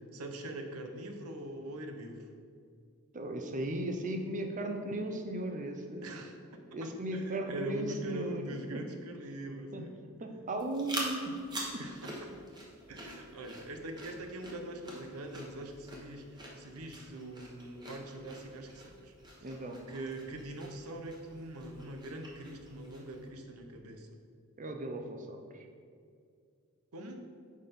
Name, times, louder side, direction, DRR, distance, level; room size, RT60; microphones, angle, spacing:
voice 1, 0.1-2.3 6.0-6.4 6.8-10.0 11.8-12.1 12.9-16.2 16.6-19.5 19.9-24.1 26.9-27.2, right 1 dB, 85° right, 5 dB, 0.8 m, -43 dB
voice 2, 3.1-6.2 6.7-8.8 9.7-9.9 10.2-11.4 11.7-11.8 19.4-19.8 24.6-25.4, right 1 dB, 35° right, 4 dB, 0.7 m, -36 dB
sound 1, 10.5-23.3, right 1 dB, 20° right, 1.2 m, -46 dB
6.5 x 5.6 x 5.2 m, 2.3 s
head